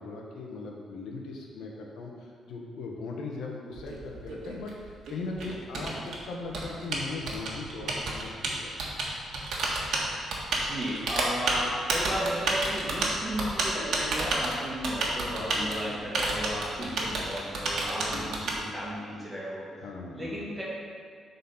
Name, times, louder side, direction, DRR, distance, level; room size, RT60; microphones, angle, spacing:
voice 1, 0.0-8.9 15.4-15.9 16.8-17.1 18.1-18.3 19.8-20.4, left 3 dB, 80° left, 0 dB, 1.1 m, -39 dB
Typing, 3.7-18.5, right 2 dB, 65° right, 1.4 m, -30 dB
voice 2, 10.6-19.7 20.1-20.6, equal, 15° right, -7 dB, 2.1 m, -34 dB
8.1 x 4.2 x 5.7 m, 2.1 s
cardioid pair, 160°, 0 cm